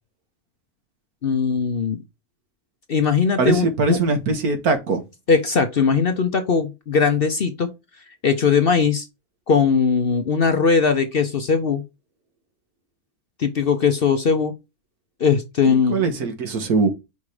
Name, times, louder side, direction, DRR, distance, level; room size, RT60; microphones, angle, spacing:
voice 1, 1.2-2.0 2.9-4.0 5.3-7.7 8.2-9.1 9.5-11.8 13.4-14.5 15.2-16.0, left 5 dB, 50° left, 0.8 m, -19 dB
voice 2, 3.4-5.0 15.7-16.9, right 3 dB, 85° right, 1.8 m, -21 dB
5.5 x 4.8 x 4.8 m
omnidirectional pair, 1.6 m